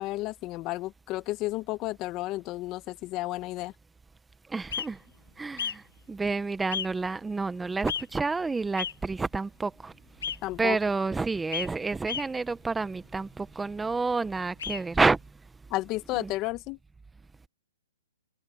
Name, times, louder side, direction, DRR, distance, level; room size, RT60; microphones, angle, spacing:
voice 1, 0.0-3.7 10.4-10.8 15.7-16.8, left 18 dB, 25° left, 1.0 m, -32 dB
voice 2, 4.5-5.0 5.4-9.9 10.6-15.2 16.1-16.3, right 4 dB, 5° right, 0.9 m, -29 dB
sound 1, 4.7-4.9 5.6-5.7 6.7-6.9 7.9-8.0 8.8-8.9 10.2-10.4 11.5-11.7 12.1-12.2 14.6-14.8, left 8 dB, 70° left, 0.8 m, -32 dB
hypercardioid pair, 150°, 0 cm